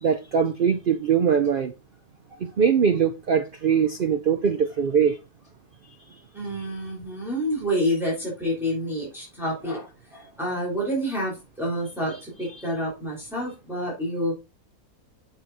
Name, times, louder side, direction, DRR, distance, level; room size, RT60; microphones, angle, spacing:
voice 1, 0.0-1.7 2.4-5.2, right 7 dB, 70° right, 0.5 m, -22 dB
voice 2, 6.3-14.3, equal, ahead, 3.3 m, -28 dB
7.7 x 5.3 x 4.0 m
omnidirectional pair, 1.6 m